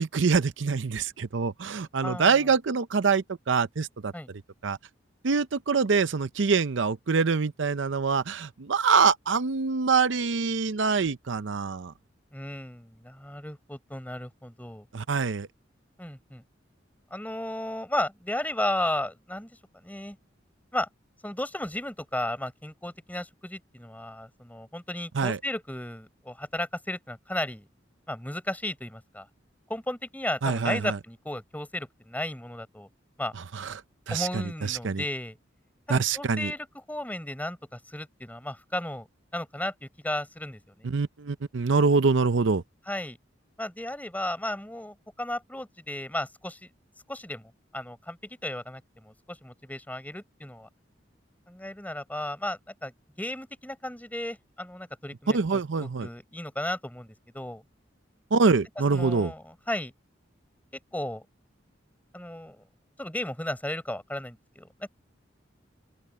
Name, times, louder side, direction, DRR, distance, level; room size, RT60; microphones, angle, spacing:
voice 1, 0.0-4.1 4.6-4.8 5.2-11.9 14.9-15.5 25.1-25.4 30.4-31.0 33.5-33.7 34.1-35.0 35.9-36.5 40.8-42.6 55.3-56.1 58.3-59.3, right 5 dB, 75° right, 0.6 m, -25 dB
voice 2, 2.0-2.4 4.1-4.3 12.3-14.9 16.0-16.4 17.1-20.2 20.7-20.9 21.2-27.7 28.1-29.3 29.7-32.9 33.2-33.3 34.1-35.4 35.9-39.1 39.3-40.9 42.9-43.2 43.6-46.7 47.1-50.7 51.5-52.9 53.2-57.6 58.9-59.9 60.9-61.2 62.1-62.6 63.0-64.9, left 1 dB, 10° left, 4.8 m, -34 dB
open air
head